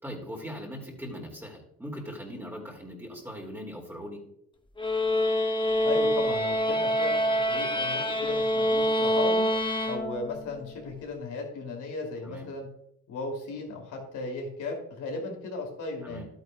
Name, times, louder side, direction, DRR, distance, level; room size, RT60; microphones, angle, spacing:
voice 1, 0.0-4.2 12.2-12.5 16.0-16.3, equal, 10° right, -1 dB, 2.5 m, -40 dB
sound 1, 4.8-10.5, equal, 15° left, 1.0 m, -26 dB
voice 2, 5.8-9.5 9.9-12.7 13.1-16.3, left 3 dB, 80° left, 1 dB, 3.1 m, -36 dB
12.0 x 9.2 x 2.4 m, 0.75 s
cardioid pair, 90°, 30 cm